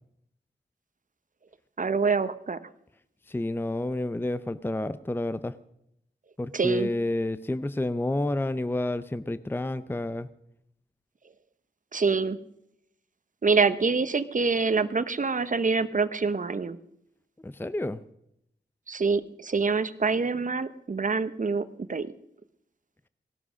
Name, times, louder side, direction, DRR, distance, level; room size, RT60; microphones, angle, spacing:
voice 1, 1.8-2.6 6.5-6.9 11.9-12.4 13.4-16.8 18.9-22.1, right 4 dB, 45° right, 13 dB, 1.0 m, -26 dB
voice 2, 3.3-5.5 6.4-10.3 17.4-18.0, left 1 dB, 10° left, 14 dB, 0.6 m, -30 dB
18.5 x 12.5 x 6.3 m, 0.78 s
wide cardioid pair, 70°, 18 cm